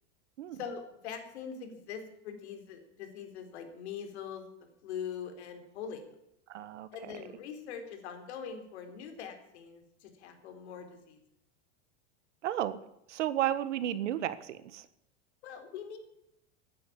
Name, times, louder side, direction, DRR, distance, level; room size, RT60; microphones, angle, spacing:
voice 1, 0.5-4.5 4.8-6.0 6.9-11.2 15.4-16.0, left 7 dB, 65° left, 7 dB, 3.9 m, -42 dB
voice 2, 6.5-6.9 7.1-7.2 12.4-12.8 13.1-14.9, right 12 dB, 85° right, 14 dB, 1.6 m, -33 dB
16.0 x 10.0 x 8.6 m, 0.80 s
supercardioid pair, 170°, 35 cm